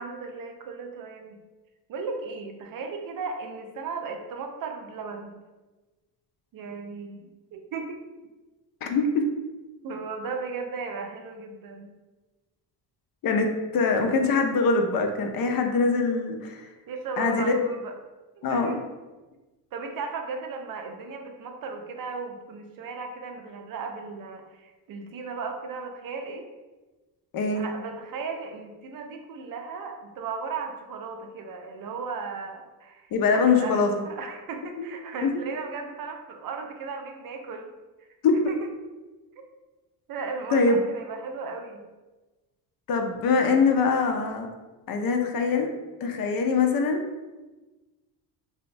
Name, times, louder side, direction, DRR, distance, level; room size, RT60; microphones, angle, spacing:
voice 1, 0.0-1.4 1.9-5.4 6.5-8.0 9.8-11.9 16.9-17.9 18.3-18.8 19.7-26.5 27.5-37.7 38.5-38.7 40.1-41.9, right 4 dB, 50° right, 4 dB, 0.5 m, -36 dB
voice 2, 8.8-9.2 13.2-13.5 13.7-16.6 17.2-17.5 18.4-18.7 27.3-27.6 33.1-34.0 34.8-34.9 35.2-35.3 38.2-38.4 40.5-40.8 42.9-44.5 44.9-45.7 46.0-47.0, left 4 dB, 50° left, 4 dB, 0.5 m, -23 dB
2.9 x 2.1 x 2.5 m, 1.2 s
supercardioid pair, 65°, 45 cm